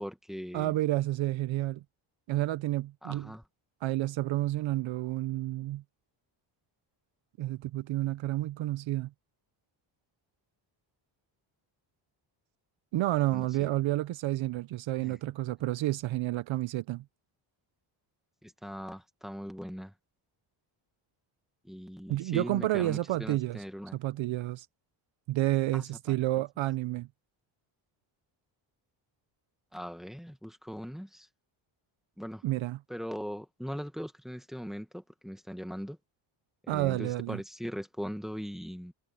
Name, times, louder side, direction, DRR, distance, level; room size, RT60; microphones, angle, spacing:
voice 1, 0.0-0.7 3.0-3.4 13.3-13.7 15.0-15.2 18.4-19.9 21.6-24.0 25.7-25.9 29.7-31.3 32.2-32.4 32.9-36.0 36.6-38.9, equal, ahead, 1.8 m, -40 dB
voice 2, 0.5-1.8 2.3-3.3 3.8-5.8 7.4-9.1 12.9-17.0 22.1-23.6 23.9-24.7 25.3-27.1 32.4-32.8 36.7-37.4, right 16 dB, 75° right, 0.7 m, -30 dB
cardioid pair, 135°, 47 cm